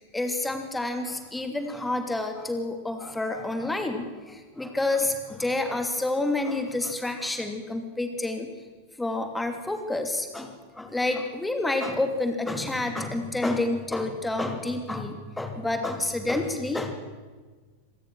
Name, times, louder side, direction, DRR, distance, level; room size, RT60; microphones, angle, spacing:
voice 1, 0.0-8.5 9.0-16.9, left 2 dB, 5° left, 6 dB, 2.9 m, -29 dB
26.0 x 19.0 x 6.4 m, 1.4 s
figure-of-eight pair, 90°, 0 cm